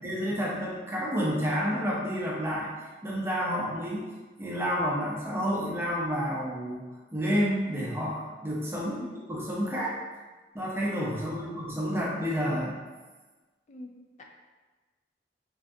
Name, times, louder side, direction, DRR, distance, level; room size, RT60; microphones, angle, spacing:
voice 1, 0.0-2.7 3.0-4.1 4.4-9.0 9.3-10.0 10.5-12.8, equal, 15° right, -5 dB, 0.6 m, -30 dB
voice 2, 8.8-9.3 11.1-11.6 13.7-14.2, left 1 dB, 40° left, 2 dB, 0.4 m, -46 dB
3.4 x 2.6 x 2.4 m, 1.3 s
head